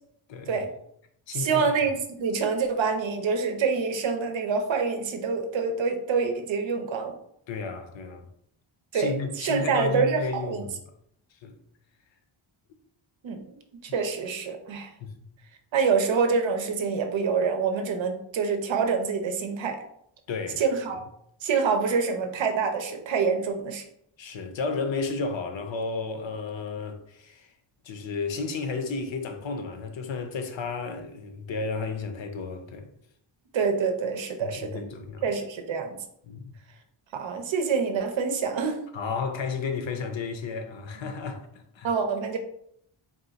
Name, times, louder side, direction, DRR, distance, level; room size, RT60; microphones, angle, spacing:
voice 1, 0.3-0.6 1.3-1.7 7.5-8.3 8.9-10.7 11.4-11.6 15.0-15.2 20.3-20.6 20.9-21.0 24.2-27.5 27.8-32.9 34.4-35.3 36.2-36.5 38.9-41.9, left 4 dB, 65° left, 0.7 m, -32 dB
voice 2, 1.4-7.1 8.9-10.6 13.2-13.4 13.9-14.9 15.7-19.8 20.6-21.0 21.4-23.8 33.5-34.8 35.2-35.9 37.1-38.8 41.8-42.4, right 5 dB, 70° right, 0.7 m, -26 dB
3.7 x 2.4 x 3.9 m
wide cardioid pair, 150°, 49 cm